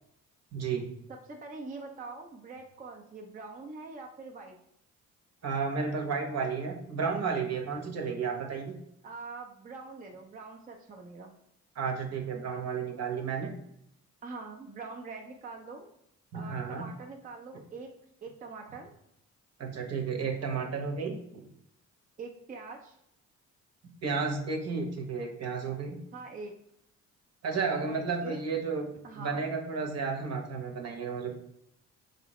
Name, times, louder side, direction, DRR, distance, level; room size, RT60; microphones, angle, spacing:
voice 1, 0.5-0.9 5.4-8.7 11.7-13.5 16.3-16.9 19.6-21.5 24.0-26.0 27.4-28.9 29.2-31.3, right 5 dB, 55° right, 1 dB, 0.9 m, -32 dB
voice 2, 1.3-4.6 9.0-11.3 14.2-15.9 16.3-17.9 18.2-18.9 22.2-23.0 26.1-26.5 27.7-28.4 29.0-29.5, right 3 dB, 30° right, 1 dB, 0.5 m, -44 dB
4.1 x 2.8 x 3.0 m, 0.76 s
cardioid pair, 90°, 30 cm